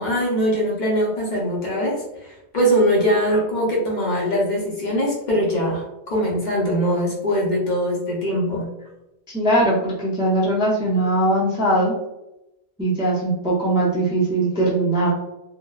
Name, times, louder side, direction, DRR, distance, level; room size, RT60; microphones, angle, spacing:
voice 1, 0.0-8.7, equal, 50° left, -4 dB, 0.7 m, -22 dB
voice 2, 9.3-11.9 12.8-15.1, right 1 dB, 5° right, -6 dB, 0.4 m, -20 dB
2.8 x 2.0 x 2.2 m, 0.92 s
omnidirectional pair, 1.1 m